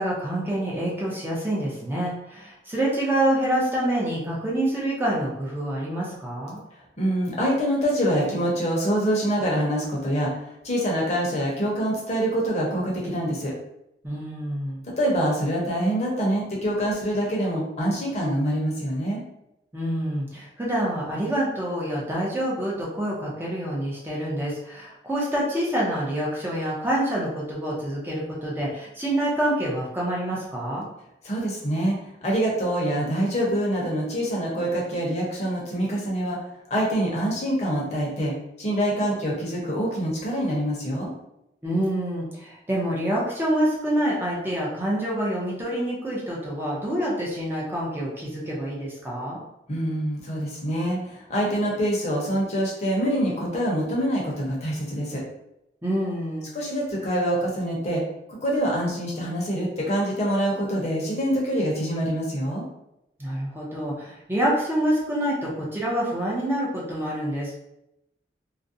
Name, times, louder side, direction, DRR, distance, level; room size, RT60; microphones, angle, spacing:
voice 1, 0.0-6.6 14.0-14.8 19.7-30.9 41.6-49.4 55.8-56.5 63.2-67.6, right 1 dB, 10° right, -5 dB, 0.6 m, -27 dB
voice 2, 7.0-13.5 15.0-19.2 31.2-31.9 32.2-36.4 36.7-38.3 38.6-41.1 49.7-55.2 56.5-58.0 58.3-62.6, equal, 40° left, -3 dB, 0.7 m, -25 dB
2.5 x 2.1 x 2.6 m, 0.84 s
head